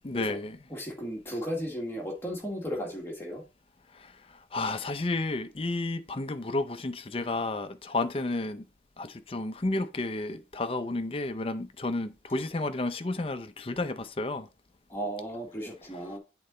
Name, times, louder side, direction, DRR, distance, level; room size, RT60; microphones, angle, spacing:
voice 1, 0.0-0.6 3.9-8.6 9.0-14.5, left 2 dB, 30° left, 0.5 m, -32 dB
voice 2, 0.7-3.4 14.9-16.2, equal, 15° left, 1.7 m, -35 dB
8.6 x 3.9 x 4.3 m
head